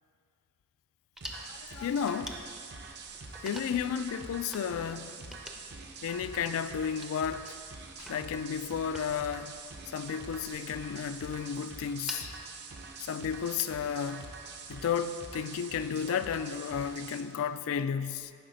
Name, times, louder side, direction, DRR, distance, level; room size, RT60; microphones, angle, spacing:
sound 1, 1.2-12.3, equal, ahead, 0.5 m, -49 dB
sound 2, 1.2-17.2, right 4 dB, 50° right, 0.6 m, -45 dB
voice 1, 1.3-2.4 3.4-5.4 6.0-7.6 8.0-9.6 9.9-12.3 13.0-14.2 14.7-18.3, left 7 dB, 65° left, 0.3 m, -33 dB
11.0 x 4.8 x 5.1 m
head